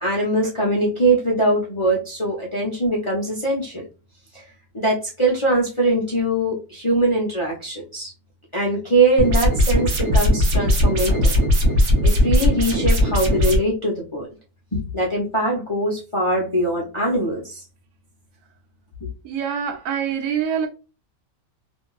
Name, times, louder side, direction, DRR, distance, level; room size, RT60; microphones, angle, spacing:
voice 1, 0.0-3.9 4.3-4.5 4.7-8.1 8.5-11.3 12.0-14.3 14.7-17.6 19.0-19.1, right 1 dB, 45° left, 0.3 m, -22 dB
sound 1, 9.2-13.6, equal, 55° right, 1.0 m, -18 dB
voice 2, 19.2-20.7, right 8 dB, 85° right, 1.2 m, -25 dB
2.8 x 2.6 x 2.3 m
omnidirectional pair, 1.6 m